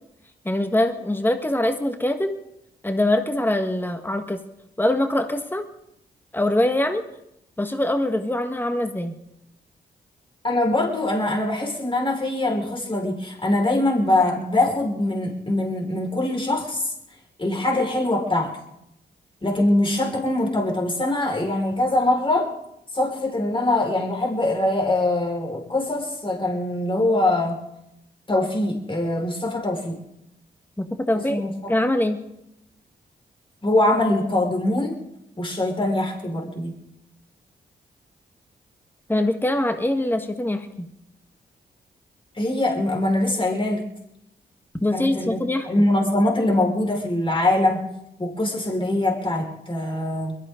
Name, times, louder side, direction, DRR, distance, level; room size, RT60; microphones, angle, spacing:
voice 1, 0.5-2.4 2.8-4.4 4.8-5.7 6.3-7.0 7.6-9.1 30.8-31.4 31.7-32.2 39.1-40.9 44.8-45.7, left 1 dB, 10° left, 7 dB, 1.7 m, -23 dB
voice 2, 10.4-16.9 17.4-18.5 19.4-22.5 22.9-27.6 28.3-30.0 31.3-31.7 33.6-35.0 35.4-36.7 42.4-43.8 44.9-45.3 45.7-47.8 48.2-50.4, left 1 dB, 30° left, -1 dB, 5.3 m, -23 dB
22.0 x 14.5 x 3.9 m, 0.81 s
supercardioid pair, 45°, 19 cm